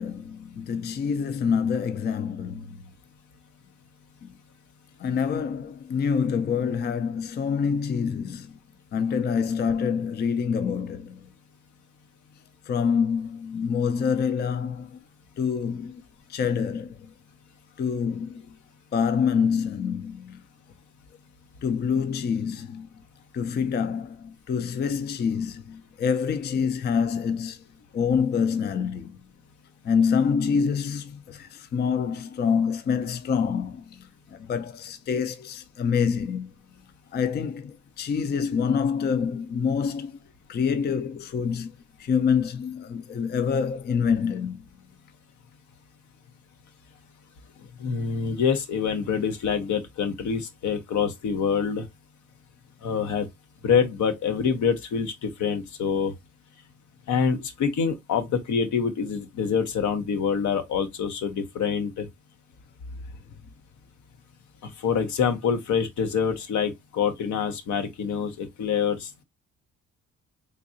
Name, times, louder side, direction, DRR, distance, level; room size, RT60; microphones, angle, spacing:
voice 1, 0.0-2.8 5.0-8.5 8.9-11.1 12.7-15.0 15.4-16.0 16.3-16.9 17.8-18.4 18.9-20.3 21.6-22.9 23.3-27.6 27.9-29.1 29.9-33.8 34.5-36.5 37.1-40.1 40.5-41.7 42.0-44.6, left 6 dB, 35° left, 0.4 m, -26 dB
voice 2, 47.8-51.9 52.8-53.3 53.6-56.1 57.1-62.1 64.6-69.2, left 6 dB, 70° left, 0.9 m, -26 dB
3.8 x 2.7 x 2.6 m
cardioid pair, 90°, 30 cm